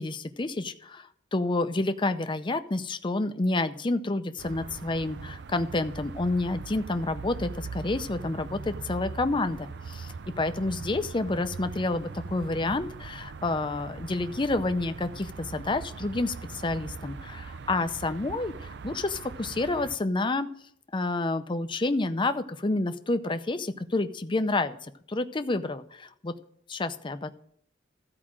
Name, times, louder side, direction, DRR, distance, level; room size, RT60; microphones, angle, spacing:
voice 1, 0.0-18.5 18.8-20.5 20.9-26.3 26.7-27.3, left 2 dB, 25° left, 9 dB, 0.6 m, -29 dB
sound 1, 4.4-20.0, right 5 dB, 60° right, 0.5 m, -41 dB
13.5 x 4.9 x 7.5 m, 0.66 s
head